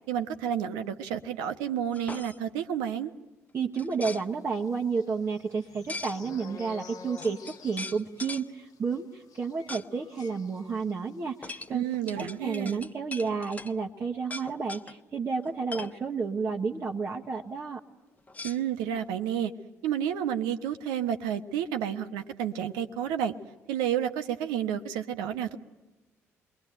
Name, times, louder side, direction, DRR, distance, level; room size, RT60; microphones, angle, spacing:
voice 1, 0.1-3.1 11.7-12.9 18.4-19.5 19.8-23.3 23.7-25.6, right 9 dB, 65° right, 7 dB, 1.2 m, -30 dB
sound 1, 1.9-2.4 3.8-4.2 5.9-6.2 6.9-7.0 7.2-8.5 9.7-9.9 10.2-10.3 11.4-13.7 14.2-14.9 15.4-16.0 18.3-19.1, left 3 dB, 20° left, 1.2 m, -40 dB
voice 2, 3.5-11.9 12.1-17.8, right 5 dB, 35° right, -1 dB, 1.6 m, -31 dB
sound 2, 4.5-11.2 11.5-11.7 11.9-12.2, left 4 dB, 55° left, 1.3 m, -49 dB
29.5 x 22.0 x 9.1 m, 1.1 s
figure-of-eight pair, 45°, 8 cm